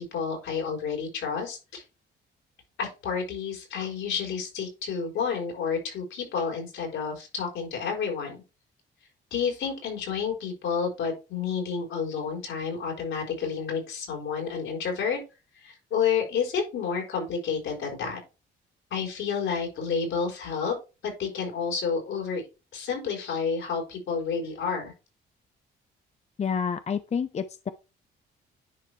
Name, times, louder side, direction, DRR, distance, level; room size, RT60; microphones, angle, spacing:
voice 1, 0.0-1.8 2.8-8.4 9.3-15.2 15.5-18.2 18.9-20.8 21.0-22.4 22.7-24.9, left 6 dB, 80° left, 4.5 m, -30 dB
voice 2, 26.4-27.7, left 6 dB, 35° left, 0.6 m, -29 dB
10.0 x 4.9 x 3.3 m
cardioid pair, 90°, 20 cm